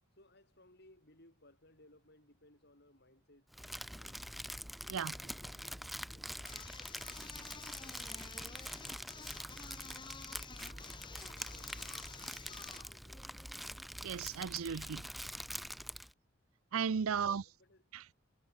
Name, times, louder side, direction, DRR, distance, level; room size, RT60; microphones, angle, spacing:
voice 1, 0.2-4.6 5.2-6.7 7.0-9.8 10.3-13.8 17.2-17.9, left 1 dB, 50° left, 7.5 m, -65 dB
Crumpling crinkling, 3.5-16.1, equal, ahead, 0.9 m, -45 dB
sound 1, 6.4-12.9, left 4 dB, 20° left, 2.2 m, -51 dB
voice 2, 14.0-15.1 16.7-17.5 17.9-18.0, right 6 dB, 75° right, 0.5 m, -35 dB
head